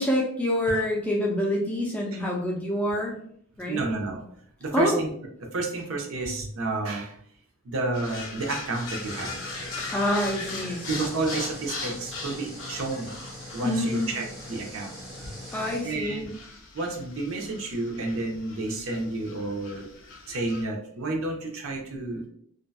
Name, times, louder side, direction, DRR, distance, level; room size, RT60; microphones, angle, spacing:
voice 1, 0.0-3.2 3.6-3.8 4.7-5.0 9.9-11.0 13.6-14.1 15.5-16.3, left 1 dB, 5° left, -2 dB, 0.3 m, -27 dB
voice 2, 3.7-4.2 4.6-5.1 5.5-7.1 7.6-9.3 10.9-13.1 13.5-14.9 15.2-15.3 15.8-16.3 16.7-19.8 20.3-22.2, right 2 dB, 70° right, 1 dB, 0.6 m, -30 dB
sound 1, 7.9-20.6, left 3 dB, 65° left, 0.5 m, -40 dB
sound 2, 8.9-15.9, equal, 20° right, 1.3 m, -42 dB
2.7 x 2.2 x 2.3 m, 0.63 s
head